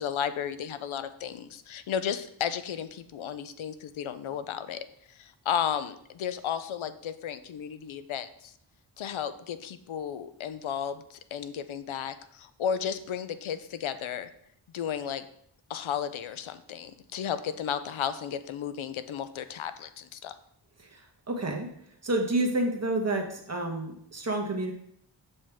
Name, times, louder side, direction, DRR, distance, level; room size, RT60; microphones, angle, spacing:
voice 1, 0.0-8.5 9.0-14.3 14.7-15.3 15.7-20.3, left 8 dB, 85° left, 12 dB, 0.6 m, -34 dB
voice 2, 20.9-21.7 22.0-24.7, right 2 dB, 35° right, 2 dB, 1.3 m, -29 dB
7.0 x 5.4 x 3.5 m, 0.70 s
wide cardioid pair, 95°, 47 cm